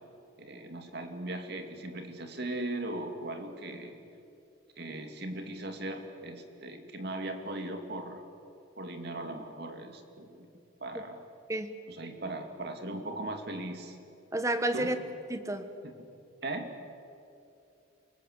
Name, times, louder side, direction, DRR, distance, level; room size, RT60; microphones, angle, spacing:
voice 1, 0.4-4.0 4.8-8.2 8.8-10.5 10.8-11.2 11.9-14.0 14.7-14.9 15.8-16.0 16.4-16.8, right 1 dB, 55° right, 5 dB, 2.5 m, -38 dB
voice 2, 14.3-15.0 15.3-15.7, right 1 dB, 15° right, 9 dB, 1.2 m, -30 dB
29.0 x 19.0 x 8.1 m, 2.6 s
head